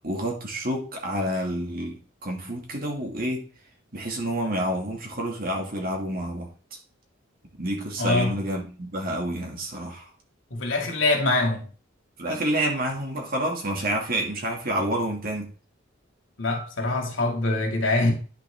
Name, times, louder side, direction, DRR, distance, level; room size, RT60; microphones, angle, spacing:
voice 1, 0.0-3.5 3.9-6.5 7.6-10.1 12.2-15.5, right 1 dB, 50° right, 2.4 m, -28 dB
voice 2, 8.0-8.4 10.5-11.7 16.4-18.1, left 2 dB, 70° left, 2.5 m, -24 dB
10.0 x 6.0 x 3.7 m
head